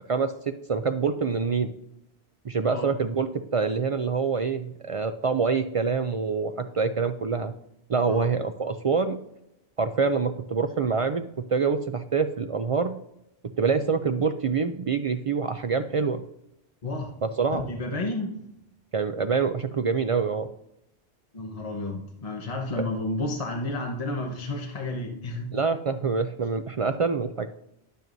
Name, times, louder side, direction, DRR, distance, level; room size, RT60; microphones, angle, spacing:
voice 1, 0.7-1.7 2.4-3.3 3.5-7.5 7.9-9.2 9.8-12.9 13.6-16.2 17.2-17.6 18.9-20.5 22.8-22.9 25.5-27.5, right 5 dB, 55° right, 8 dB, 0.4 m, -26 dB
voice 2, 17.5-18.4 21.3-25.6, left 2 dB, 35° left, 0 dB, 1.1 m, -31 dB
10.5 x 9.1 x 2.6 m, 0.82 s
omnidirectional pair, 1.1 m